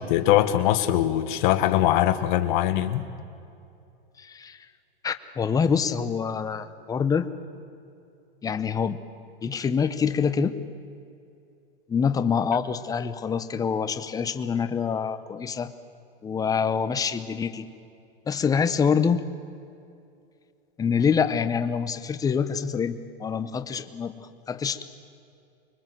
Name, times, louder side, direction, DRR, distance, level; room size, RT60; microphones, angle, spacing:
voice 1, 0.1-3.1, left 13 dB, 50° left, 8 dB, 1.6 m, -22 dB
voice 2, 4.2-4.6 5.0-7.3 8.4-9.0 9.4-10.6 11.9-15.7 16.2-17.7 18.3-19.2 20.8-24.8, left 6 dB, 10° left, 10 dB, 0.9 m, -26 dB
25.5 x 22.5 x 7.8 m, 2.5 s
hypercardioid pair, 145°, 30 cm